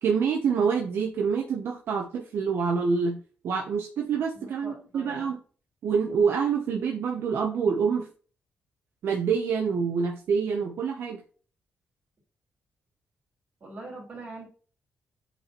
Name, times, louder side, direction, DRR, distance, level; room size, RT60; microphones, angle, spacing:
voice 1, 0.0-5.4 5.8-8.1 9.0-11.2, right 6 dB, 65° right, 1 dB, 0.9 m, -26 dB
voice 2, 4.3-5.3 13.6-14.5, right 2 dB, 35° right, -2 dB, 3.1 m, -42 dB
8.2 x 4.2 x 3.0 m, 0.39 s
wide cardioid pair, 160°, 4 cm